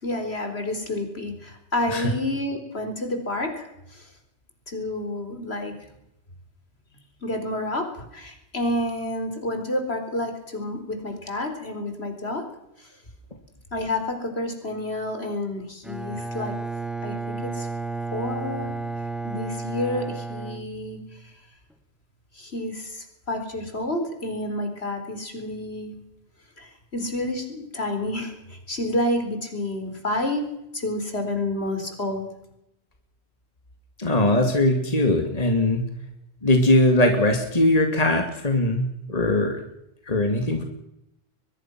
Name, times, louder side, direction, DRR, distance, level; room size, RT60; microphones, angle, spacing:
voice 1, 0.0-4.1 4.7-5.7 7.2-12.4 12.8-12.9 13.7-16.5 17.0-17.7 18.1-18.8 19.2-21.0 22.3-25.9 26.6-30.4 30.7-32.3, left 1 dB, 70° left, 6 dB, 4.4 m, -29 dB
Bowed string instrument, 15.8-21.3, right 3 dB, ahead, 1.5 m, -32 dB
voice 2, 34.0-35.8 36.4-39.6 40.1-40.6, left 1 dB, 35° left, 4 dB, 2.5 m, -20 dB
22.5 x 22.0 x 6.1 m, 0.83 s
omnidirectional pair, 1.1 m